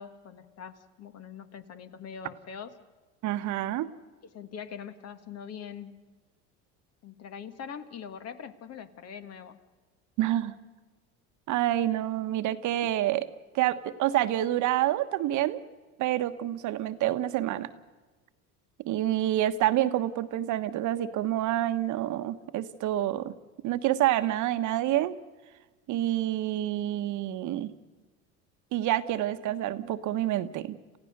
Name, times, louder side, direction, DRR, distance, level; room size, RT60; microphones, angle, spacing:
voice 1, 0.0-2.8 4.3-6.0 7.0-9.6 12.8-12.9, left 7 dB, 45° left, 10 dB, 1.6 m, -43 dB
voice 2, 3.2-3.9 10.2-10.5 11.5-13.3 13.5-15.6 16.0-17.7 18.8-23.3 23.6-25.1 25.9-27.7 28.7-31.0, right 13 dB, 55° right, 10 dB, 1.2 m, -28 dB
28.0 x 15.5 x 6.6 m, 1.3 s
supercardioid pair, 95°, 35 cm